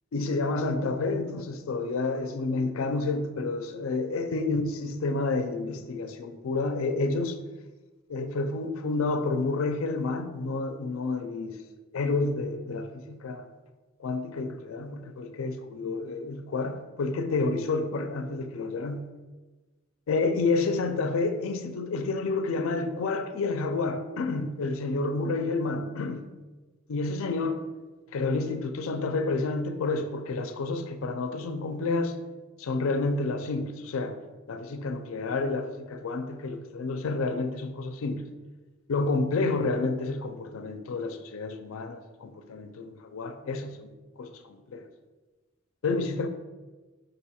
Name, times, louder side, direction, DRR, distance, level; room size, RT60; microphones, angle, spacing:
voice 1, 0.1-7.4 8.1-11.6 11.9-13.5 14.0-19.0 20.1-26.2 26.9-27.6 28.1-32.1 32.6-34.2 34.5-38.2 38.9-43.9 44.2-44.8 45.8-46.3, left 3 dB, 75° left, 8 dB, 0.4 m, -29 dB
5.1 x 2.3 x 4.1 m, 1.2 s
head